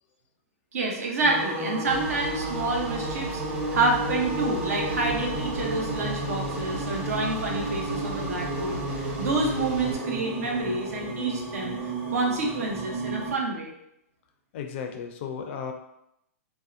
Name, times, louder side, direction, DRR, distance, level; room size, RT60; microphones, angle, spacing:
voice 1, 0.7-11.8 12.1-13.7, right 3 dB, 75° right, 0 dB, 0.7 m, -28 dB
sound 1, 1.2-13.3, right 1 dB, 15° right, 0.7 m, -32 dB
sound 2, 1.9-9.9, right 1 dB, 40° right, 1.0 m, -38 dB
voice 2, 14.5-15.7, left 7 dB, 50° left, 5 dB, 0.4 m, -34 dB
2.6 x 2.0 x 2.4 m, 0.78 s
hypercardioid pair, 130°, 8 cm